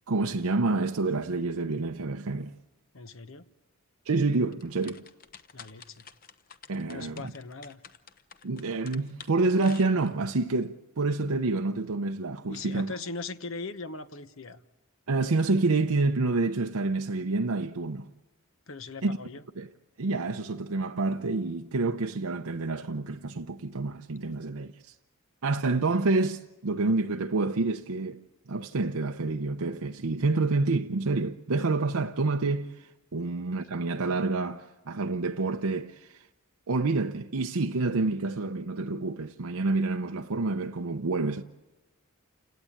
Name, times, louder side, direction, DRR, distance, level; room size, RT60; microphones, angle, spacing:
voice 1, 0.1-2.5 4.1-5.0 6.7-7.2 8.4-12.9 15.1-18.1 19.0-19.2 19.6-19.7 20.0-24.8 25.4-28.2 28.5-36.2 36.7-41.4, right 3 dB, 80° right, 0.7 m, -28 dB
voice 2, 2.9-3.4 5.5-6.0 6.9-7.8 12.5-14.6 18.7-19.4, left 3 dB, 65° left, 1.1 m, -39 dB
sound 1, 4.5-10.4, left 7 dB, 40° left, 0.8 m, -49 dB
29.0 x 17.5 x 8.7 m
head